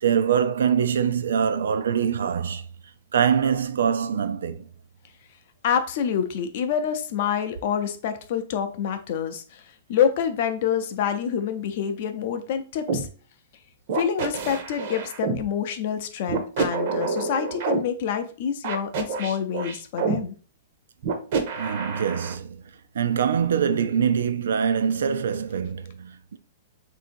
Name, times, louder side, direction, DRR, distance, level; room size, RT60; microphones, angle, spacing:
voice 1, 0.0-2.7 3.1-4.7 21.5-22.6 22.9-26.4, right 7 dB, 85° right, 0.4 m, -24 dB
voice 2, 5.6-9.6 9.9-13.1 13.9-20.3, left 8 dB, 40° left, 0.5 m, -27 dB
sound 1, 12.9-13.0 13.9-15.4 16.3-17.8 18.6-20.2 21.0-22.3, right 5 dB, 40° right, 0.7 m, -27 dB
3.6 x 2.7 x 4.3 m
hypercardioid pair, 175°, 0 cm